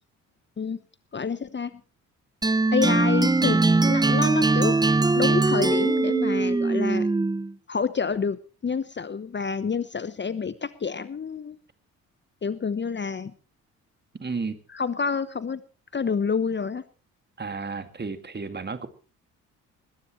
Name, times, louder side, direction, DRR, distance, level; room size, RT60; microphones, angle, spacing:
voice 1, 1.1-1.8 2.7-4.8 5.1-7.1 7.7-11.6 12.4-13.3 14.7-15.6 15.9-16.8, left 5 dB, 25° left, 15 dB, 1.0 m, -28 dB
sound 1, 2.4-7.5, right 3 dB, 10° right, 0.7 m, -21 dB
voice 2, 14.2-14.6 17.4-18.9, right 4 dB, 25° right, 9 dB, 2.3 m, -32 dB
20.5 x 17.0 x 3.2 m, 0.36 s
hypercardioid pair, 45°, 40 cm